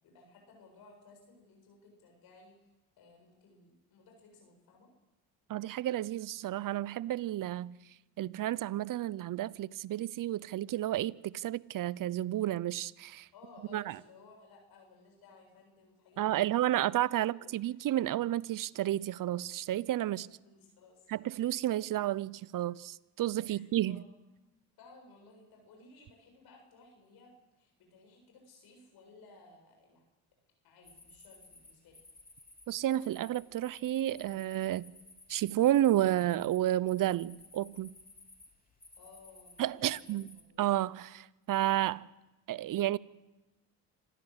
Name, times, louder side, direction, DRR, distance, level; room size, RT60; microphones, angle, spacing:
voice 1, 0.0-2.6 3.0-4.9 13.3-17.5 20.1-21.1 23.4-24.1 24.8-30.0 30.6-32.0 38.9-40.6, left 3 dB, 70° left, 7.9 m, -58 dB
voice 2, 5.5-7.8 8.2-13.3 13.7-14.0 16.2-20.3 21.1-24.0 32.7-34.9 35.3-37.9 39.6-40.3 40.6-42.1 42.5-43.0, right 13 dB, 55° right, 0.8 m, -31 dB
sound 1, 30.8-40.4, left 2 dB, 20° left, 3.8 m, -57 dB
26.0 x 16.0 x 8.1 m
supercardioid pair, 75°, 39 cm